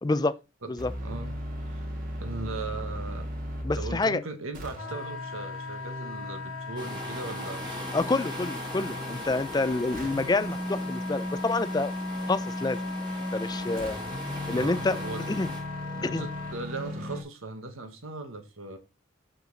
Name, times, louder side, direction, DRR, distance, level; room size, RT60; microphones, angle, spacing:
voice 1, 0.0-0.4 0.7-0.9 3.6-4.2 7.9-11.9 12.3-12.9 13.3-14.0 14.5-15.0 15.3-15.5 16.0-16.3, left 3 dB, 20° left, 0.3 m, -28 dB
sound 1, 0.8-4.1 4.5-9.3 9.9-17.2, equal, 40° right, 1.8 m, -36 dB
voice 2, 1.0-1.3 1.7-1.9 2.2-3.3 3.7-7.7 14.5-15.3 16.0-18.8, right 3 dB, 80° right, 1.3 m, -38 dB
Wind instrument woodwind instrument, 4.8-16.6, left 6 dB, 75° left, 1.0 m, -40 dB
sound 2, 6.8-15.6, right 1 dB, 20° right, 1.7 m, -41 dB
6.7 x 5.2 x 3.9 m
head